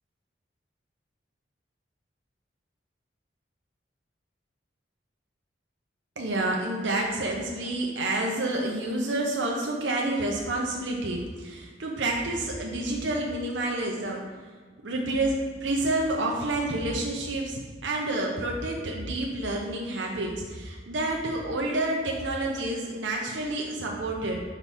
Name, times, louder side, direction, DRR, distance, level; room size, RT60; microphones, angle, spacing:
voice 1, 6.2-14.2 14.8-24.4, right 2 dB, 80° right, -1 dB, 0.8 m, -29 dB
6.0 x 5.3 x 4.2 m, 1.5 s
head